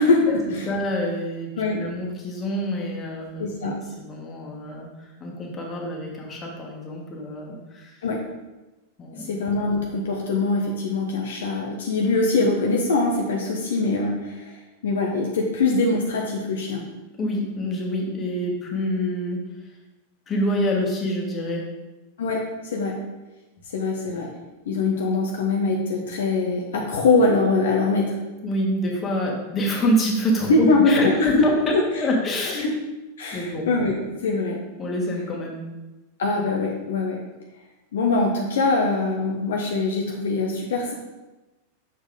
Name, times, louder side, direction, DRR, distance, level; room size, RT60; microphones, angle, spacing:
voice 1, 0.0-0.7 1.6-1.8 3.4-3.8 8.0-8.2 9.2-16.8 22.2-23.0 23.7-24.3 24.7-28.2 30.5-31.8 32.6-32.7 33.2-34.0 34.2-34.6 36.2-37.2 37.9-40.9, left 3 dB, 60° left, -1 dB, 0.9 m, -23 dB
voice 2, 0.7-8.0 9.0-9.3 17.2-19.5 20.3-21.7 28.4-31.5 32.0-32.7 33.3-33.7 34.8-35.7, equal, 25° left, -1 dB, 1.7 m, -26 dB
6.8 x 4.5 x 5.0 m, 1.1 s
figure-of-eight pair, 90°, 0 cm